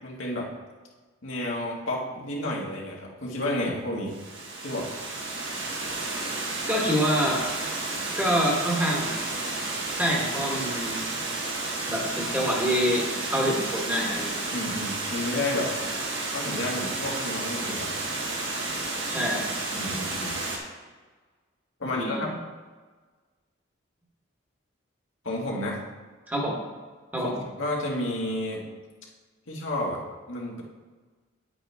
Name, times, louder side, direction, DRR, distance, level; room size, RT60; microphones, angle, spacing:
voice 1, 0.0-0.5 1.2-4.1 4.6-4.9 14.5-15.7 16.3-17.9 19.7-20.4 21.8-22.4 25.2-25.8 27.2-28.6 29.5-30.0 30.3-30.6, left 1 dB, 80° left, -3 dB, 2.0 m, -31 dB
Water, 4.1-20.6, right 2 dB, 70° right, 1.8 m, -31 dB
voice 2, 6.7-7.4 8.2-9.1 9.9-11.0 11.9-14.3 19.1-19.4 21.8-22.3 26.3-26.6 27.1-27.3, equal, 10° right, -2 dB, 1.3 m, -26 dB
9.6 x 8.3 x 3.5 m, 1.4 s
head